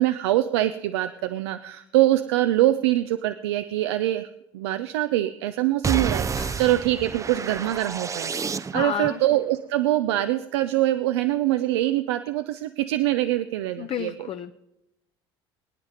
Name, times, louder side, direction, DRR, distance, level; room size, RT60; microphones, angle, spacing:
voice 1, 0.0-4.3 4.5-14.3, right 14 dB, 80° right, 10 dB, 0.6 m, -24 dB
sound 1, 5.8-9.1, right 5 dB, 25° right, 0.5 m, -29 dB
voice 2, 8.7-9.2 13.8-14.5, left 8 dB, 45° left, 9 dB, 0.7 m, -31 dB
23.5 x 9.6 x 4.0 m, 0.89 s
hypercardioid pair, 70°, 14 cm